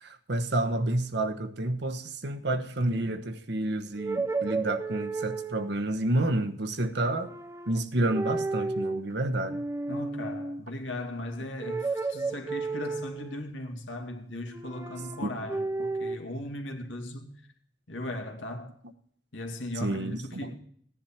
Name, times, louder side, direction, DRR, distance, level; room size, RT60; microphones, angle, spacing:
voice 1, 0.0-7.3 7.7-9.6 15.2-15.3 19.8-20.6, right 1 dB, 60° right, 1.1 m, -29 dB
sound 1, 4.0-5.8 7.1-7.8 8.1-9.0 9.4-10.6 11.6-13.4 14.5-16.2, right 3 dB, 15° right, 0.6 m, -33 dB
voice 2, 9.9-17.4 17.9-18.7 19.3-20.6, left 1 dB, 85° left, 2.3 m, -38 dB
16.5 x 10.5 x 4.4 m
head